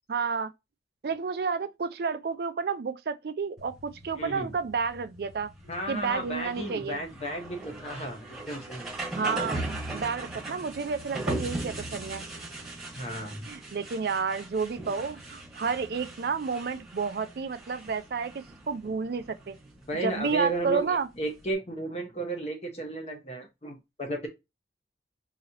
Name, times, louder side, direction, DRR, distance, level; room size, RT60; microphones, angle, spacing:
voice 1, 0.1-0.5 1.0-5.5 5.9-7.0 9.2-12.3 13.5-19.6 20.0-21.1, right 5 dB, 60° right, 0.4 m, -31 dB
sound 1, 3.6-21.5, right 2 dB, ahead, 1.1 m, -39 dB
voice 2, 4.2-4.5 5.7-8.8 13.0-13.5 19.9-24.3, right 2 dB, 35° left, 0.8 m, -34 dB
4.0 x 2.7 x 2.8 m
head